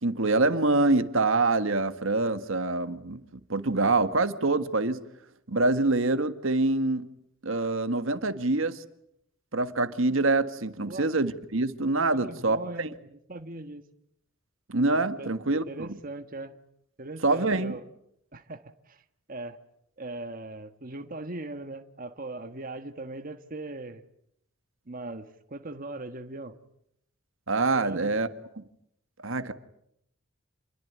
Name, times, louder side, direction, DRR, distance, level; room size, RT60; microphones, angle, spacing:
voice 1, 0.0-3.2 3.5-5.0 5.5-7.1 7.4-8.8 9.5-12.9 14.7-15.9 17.2-17.8 27.5-28.3 29.2-29.5, right 2 dB, 70° right, 1.6 m, -25 dB
voice 2, 12.1-13.8 15.2-15.3 15.7-16.6 17.0-17.8 18.3-19.0 19.3-19.6 20.0-24.0 24.9-26.6 27.8-28.1, right 2 dB, 45° right, 1.5 m, -39 dB
28.5 x 22.5 x 9.4 m
head